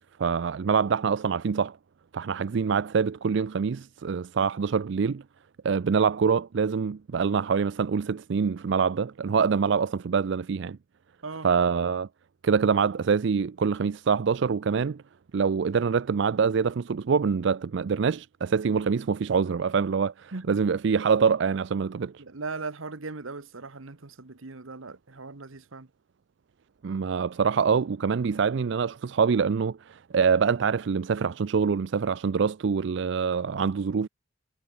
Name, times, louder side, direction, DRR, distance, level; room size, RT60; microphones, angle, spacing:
voice 1, 0.2-1.8 2.1-5.2 5.6-10.8 11.4-12.1 12.4-15.0 15.3-22.1 26.8-34.1, right 6 dB, 60° right, 0.4 m, -25 dB
voice 2, 22.2-25.9, right 3 dB, 85° right, 1.3 m, -38 dB
head